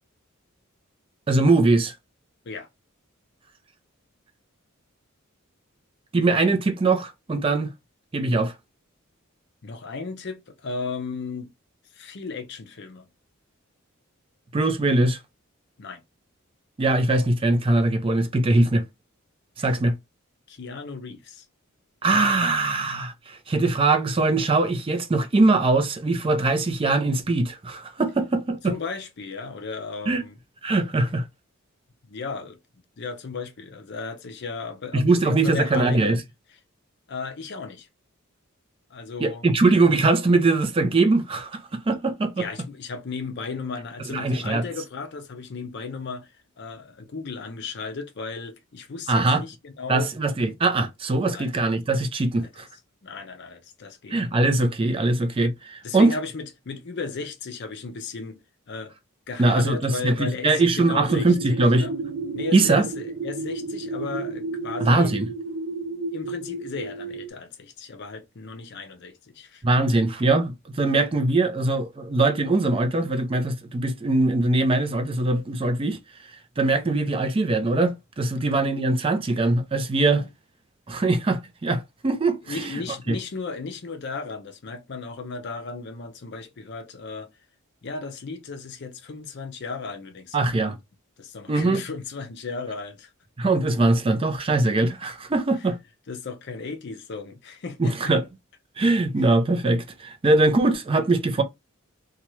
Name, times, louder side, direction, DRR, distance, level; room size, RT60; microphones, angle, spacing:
voice 1, 1.3-1.9 6.1-7.7 8.1-8.5 14.5-15.2 16.8-18.8 19.6-20.0 22.0-28.7 30.1-30.2 30.6-31.3 34.9-36.2 39.2-42.4 44.1-44.6 49.1-49.4 49.9-52.7 54.1-56.1 59.4-61.9 62.5-62.9 64.8-65.3 69.6-80.2 80.9-82.8 83.1-83.2 90.3-90.8 91.5-91.8 93.4-95.8 97.8-98.2 98.8-101.4, right 2 dB, 25° right, 0.4 m, -22 dB
voice 2, 9.6-11.5 11.9-13.1 15.8-16.0 19.6-19.7 20.5-21.4 28.6-30.3 32.0-32.6 33.0-36.2 37.1-37.9 38.9-39.5 42.4-50.1 51.2-51.5 52.4-52.6 53.0-54.1 55.8-58.4 58.7-58.9 59.3-62.0 62.3-65.1 66.1-69.6 79.9-80.3 82.5-87.3 87.8-90.8 91.2-93.1 96.1-98.1, left 4 dB, 55° left, 0.5 m, -35 dB
sound 1, 61.1-67.3, right 3 dB, 80° right, 0.7 m, -32 dB
2.8 x 2.3 x 3.0 m
head